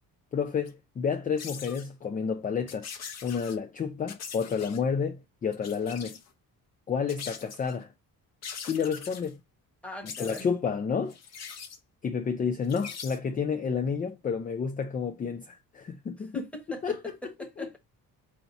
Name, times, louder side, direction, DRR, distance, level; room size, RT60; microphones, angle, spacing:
voice 1, 0.3-2.9 3.2-6.2 6.9-7.9 8.7-9.4 10.0-11.2 12.0-16.4 16.8-17.0 17.6-17.7, left 6 dB, 25° left, 0.4 m, -30 dB
sound 1, 0.7-0.8 1.4-1.8 2.7-3.6 4.1-4.8 5.5-6.3 7.1-7.8 8.4-9.3 10.1-10.5 11.1-11.8 12.6-13.2, left 6 dB, 45° left, 0.7 m, -42 dB
voice 2, 9.8-10.4 16.2-17.8, equal, 5° left, 1.1 m, -41 dB
4.5 x 2.8 x 4.0 m
cardioid pair, 125°, 37 cm